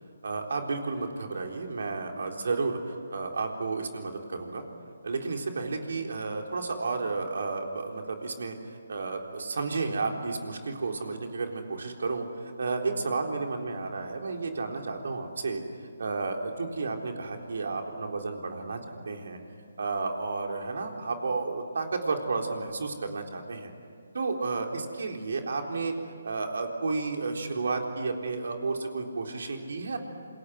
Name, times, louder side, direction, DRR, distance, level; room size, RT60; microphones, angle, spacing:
voice 1, 0.2-4.6 5.0-8.6 8.9-12.2 12.6-15.6 16.0-19.4 19.8-23.7 24.1-25.9 26.2-30.0, right 3 dB, 65° right, 3 dB, 3.9 m, -32 dB
27.0 x 22.0 x 9.8 m, 2.3 s
figure-of-eight pair, 150°, 0 cm